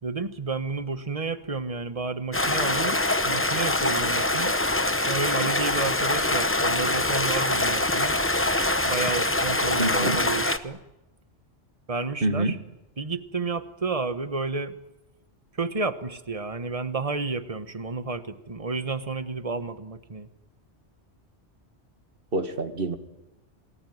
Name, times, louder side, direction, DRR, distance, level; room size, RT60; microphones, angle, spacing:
voice 1, 0.0-4.6 5.1-8.2 8.8-10.8 11.9-12.6 13.0-14.7 15.6-20.3, right 4 dB, 30° right, 10 dB, 1.3 m, -31 dB
Stream, 2.3-10.6, left 2 dB, 10° left, 0.9 m, -24 dB
voice 2, 9.8-10.2 12.2-12.6 22.3-23.0, right 2 dB, 55° right, 8 dB, 2.1 m, -26 dB
28.0 x 19.5 x 9.4 m, 0.98 s
omnidirectional pair, 1.2 m